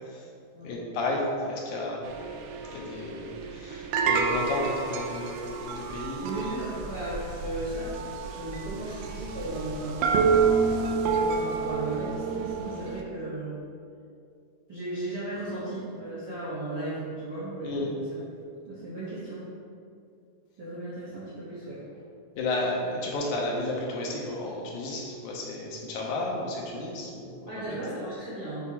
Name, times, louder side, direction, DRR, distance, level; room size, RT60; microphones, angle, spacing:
voice 1, 0.6-2.0 2.7-6.4 17.6-18.0 22.4-27.8, left 2 dB, 75° left, -2 dB, 2.0 m, -32 dB
sound 1, 2.1-13.0, right 5 dB, 80° right, 1.9 m, -29 dB
voice 2, 6.2-10.4 11.2-13.6 14.7-17.9 18.6-19.5 20.6-21.9 27.5-28.7, right 1 dB, 60° right, -10 dB, 1.0 m, -36 dB
8.0 x 4.2 x 2.8 m, 2.5 s
omnidirectional pair, 3.7 m